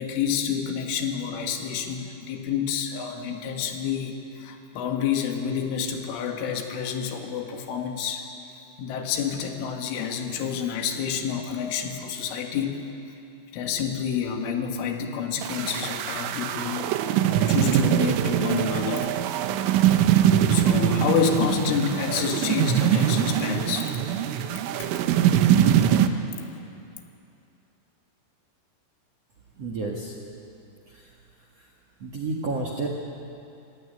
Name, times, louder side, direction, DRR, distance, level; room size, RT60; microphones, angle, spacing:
voice 1, 0.0-8.2 8.8-12.9 13.5-16.9 17.5-19.1 20.5-23.9 24.8-25.0 26.3-26.4, left 7 dB, 90° left, 3 dB, 4.3 m, -28 dB
sound 1, 15.4-26.1, right 10 dB, 85° right, 3.4 m, -22 dB
voice 2, 29.6-30.1 30.9-31.1 31.6-31.7 32.0-32.9, right 3 dB, 60° right, 0 dB, 1.7 m, -31 dB
25.5 x 16.0 x 9.7 m, 2.7 s
omnidirectional pair, 5.5 m